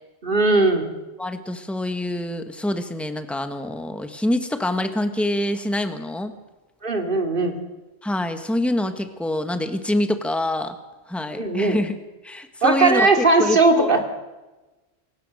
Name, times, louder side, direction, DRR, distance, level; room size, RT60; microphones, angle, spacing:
voice 1, 0.2-0.9 6.8-7.5 11.3-11.8 12.6-14.0, right 3 dB, 55° right, 4 dB, 2.8 m, -18 dB
voice 2, 1.2-6.3 8.0-10.8 11.1-11.9 12.2-14.0, left 1 dB, ahead, 8 dB, 1.4 m, -25 dB
27.5 x 16.5 x 6.4 m, 1.1 s
omnidirectional pair, 1.1 m